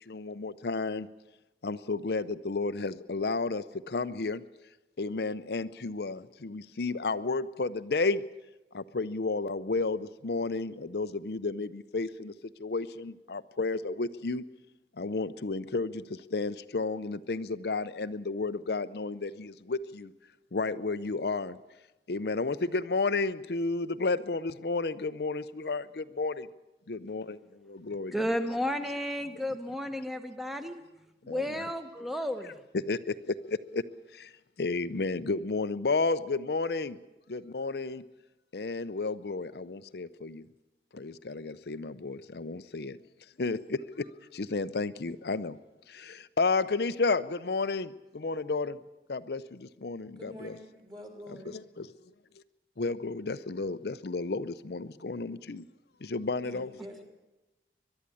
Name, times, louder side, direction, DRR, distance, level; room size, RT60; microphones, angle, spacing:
voice 1, 0.1-1.1 1.6-4.4 5.0-8.2 8.7-12.3 12.6-14.4 15.0-16.0 16.3-20.1 20.5-21.5 22.1-26.5 26.9-27.4 27.7-28.1 31.3-31.5 32.9-33.0 33.5-33.8 34.6-37.0 37.3-38.0 38.5-40.4 41.0-43.0 43.4-43.8 44.3-45.6 46.1-47.9 48.1-48.8 49.1-49.4 49.8-50.6 51.5-51.9 52.8-55.6 56.1-56.7, left 3 dB, 65° left, 13 dB, 0.6 m, -32 dB
voice 2, 28.1-30.8 31.2-32.5, equal, ahead, 8 dB, 1.1 m, -32 dB
voice 3, 50.2-51.6 56.4-57.0, equal, 25° right, 3 dB, 3.3 m, -46 dB
22.5 x 11.5 x 9.9 m, 1.0 s
head